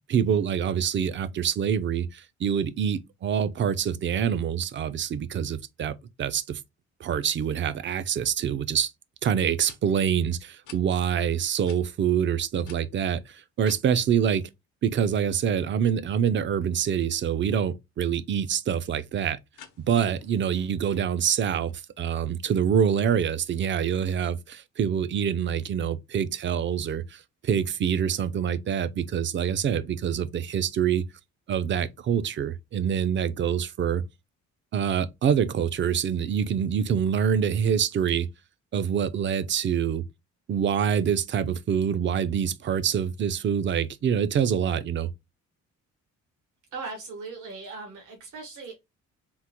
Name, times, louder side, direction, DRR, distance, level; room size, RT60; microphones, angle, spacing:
voice 1, 0.1-6.6 7.0-8.9 9.2-14.4 14.8-19.4 19.9-31.0 31.5-34.0 34.7-38.3 38.7-40.0 40.5-45.1, right 8 dB, 40° right, 0.4 m, -26 dB
sound 1, 9.6-9.8 10.6-10.8 11.6-11.8 12.6-13.8 19.5-20.5, left 8 dB, 80° left, 0.7 m, -49 dB
voice 2, 46.7-48.7, right 4 dB, 85° right, 1.2 m, -38 dB
3.6 x 2.0 x 2.8 m
cardioid pair, 90°, 30 cm